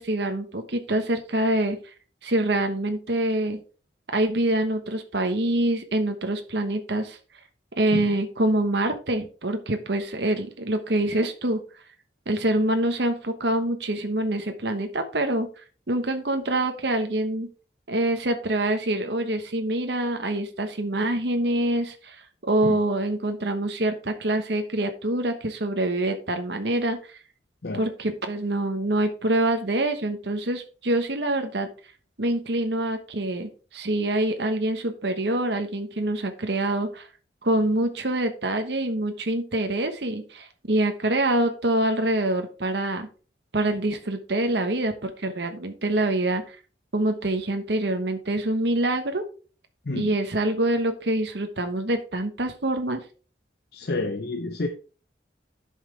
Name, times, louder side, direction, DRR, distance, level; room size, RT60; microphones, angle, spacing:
voice 1, 0.0-1.8 2.2-3.6 4.1-7.2 7.8-11.6 12.3-15.5 15.9-17.5 17.9-22.2 22.4-27.1 27.7-31.7 32.2-37.1 37.4-43.1 43.5-46.6 46.9-49.3 49.9-53.0, right 1 dB, 65° right, 1.1 m, -25 dB
voice 2, 53.7-54.7, left 2 dB, 60° left, 0.8 m, -29 dB
11.0 x 5.7 x 3.3 m
head